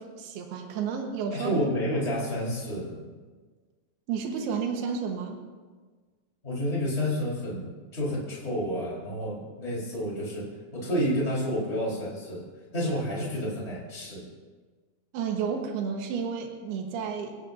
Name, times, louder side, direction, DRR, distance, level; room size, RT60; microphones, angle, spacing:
voice 1, 0.0-1.6 4.1-5.4 15.1-17.4, right 6 dB, 80° right, 2 dB, 3.5 m, -31 dB
voice 2, 1.3-3.1 6.4-14.3, equal, 15° left, -5 dB, 5.1 m, -30 dB
29.5 x 16.5 x 2.8 m, 1.4 s
omnidirectional pair, 4.5 m